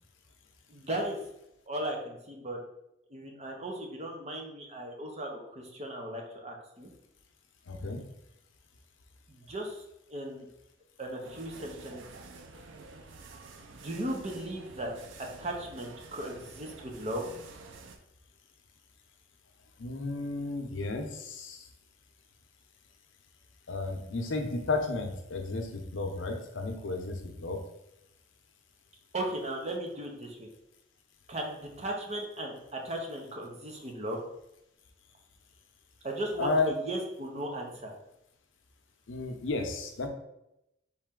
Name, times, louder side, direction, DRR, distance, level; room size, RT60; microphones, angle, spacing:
voice 1, 0.7-1.2 1.7-2.6 3.1-6.9 9.3-9.8 10.1-10.5 11.0-12.0 13.7-14.9 15.4-17.4 29.1-30.5 31.3-34.2 36.0-37.9, right 1 dB, 35° right, 1 dB, 0.8 m, -36 dB
voice 2, 7.7-8.0 19.8-21.6 23.7-27.6 36.4-36.7 39.1-40.1, left 3 dB, 80° left, 4 dB, 0.7 m, -33 dB
sound 1, 11.2-18.0, right 3 dB, 75° right, 0.5 m, -49 dB
4.3 x 3.2 x 3.7 m, 0.84 s
head